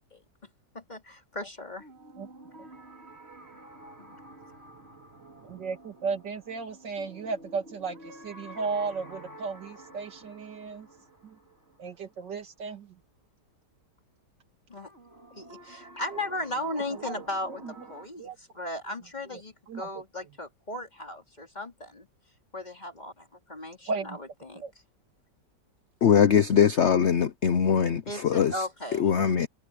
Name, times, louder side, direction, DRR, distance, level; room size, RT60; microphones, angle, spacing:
voice 1, 0.7-1.9 4.0-4.2 14.7-14.9 15.3-22.1 22.5-24.6 28.1-29.1, left 1 dB, 25° left, 2.8 m, -37 dB
sound 1, 1.8-12.7 14.8-18.1, right 1 dB, 35° right, 4.7 m, -49 dB
voice 2, 5.4-10.9 11.2-11.4 11.8-12.9 16.9-17.2 17.6-17.7 18.2-18.4 19.7-19.9 23.9-24.2 24.6-24.7, right 4 dB, 70° right, 2.7 m, -35 dB
voice 3, 26.0-28.7 28.9-29.5, left 8 dB, 60° left, 0.7 m, -22 dB
omnidirectional pair, 1.9 m